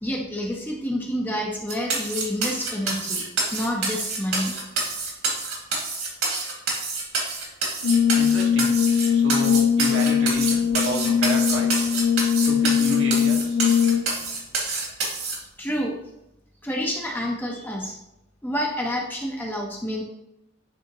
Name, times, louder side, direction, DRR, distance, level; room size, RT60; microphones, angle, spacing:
voice 1, 0.0-3.2 3.5-4.5 15.6-16.0 16.6-18.0 18.4-20.0, equal, 10° left, -1 dB, 0.7 m, -28 dB
sound 1, 1.7-15.4, right 3 dB, 90° right, 2.1 m, -27 dB
Brass instrument, 7.8-14.2, left 7 dB, 80° left, 0.4 m, -21 dB
voice 2, 8.1-8.8 9.1-11.7 12.4-13.6, right 1 dB, 60° right, 0 dB, 1.3 m, -31 dB
9.3 x 3.5 x 2.9 m, 0.88 s
head